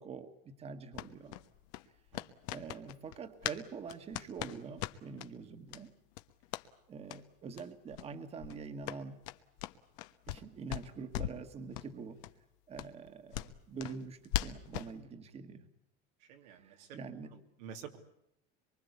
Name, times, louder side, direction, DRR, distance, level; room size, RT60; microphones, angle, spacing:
voice 1, 0.0-1.4 2.5-5.9 6.9-9.2 10.3-12.2 12.7-15.7 16.4-17.3, right 5 dB, 30° right, 8 dB, 1.7 m, -45 dB
sound 1, 0.9-3.6 3.9-5.3 5.7-5.8 6.1-6.7 7.0-7.2 7.5-7.6 7.9-8.1 8.4-10.4 10.7-11.4 11.7-11.9 12.2-12.3 12.7-14.9, left 14 dB, 75° left, 1.2 m, -40 dB
voice 2, 16.2-17.0 17.3-18.0, right 8 dB, 85° right, 4 dB, 2.9 m, -50 dB
24.0 x 24.0 x 8.2 m, 0.78 s
cardioid pair, 140°, 21 cm